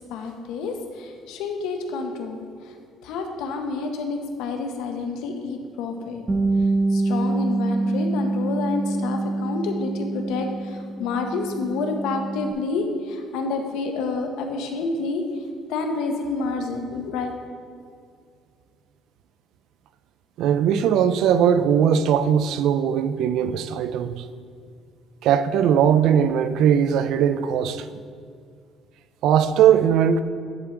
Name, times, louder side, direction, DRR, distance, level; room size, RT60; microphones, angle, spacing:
voice 1, 0.0-2.4 3.0-6.2 6.9-15.2 15.7-17.3, left 3 dB, 90° left, 0.8 m, -29 dB
Bass guitar, 6.3-12.5, right 2 dB, 25° right, 0.7 m, -25 dB
voice 2, 20.4-24.3 25.2-27.9 29.2-30.2, right 8 dB, 75° right, 0.3 m, -19 dB
10.5 x 4.5 x 3.7 m
cardioid pair, 135°, 0 cm